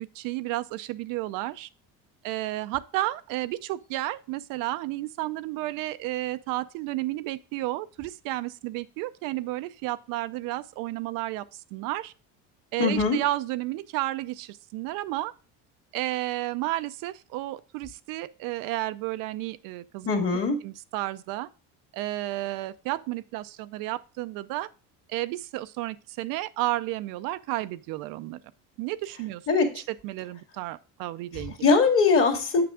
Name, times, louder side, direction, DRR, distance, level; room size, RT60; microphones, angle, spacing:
voice 1, 0.0-1.7 2.2-12.1 12.7-15.3 15.9-20.1 20.6-21.5 21.9-24.7 25.1-28.4 28.8-29.4 29.9-31.5, right 16 dB, 70° right, 0.5 m, -32 dB
voice 2, 12.8-13.2 20.1-20.6 29.5-29.7 31.6-32.6, left 4 dB, 40° left, 2.0 m, -21 dB
8.2 x 6.0 x 3.6 m
cardioid pair, 130°, 35 cm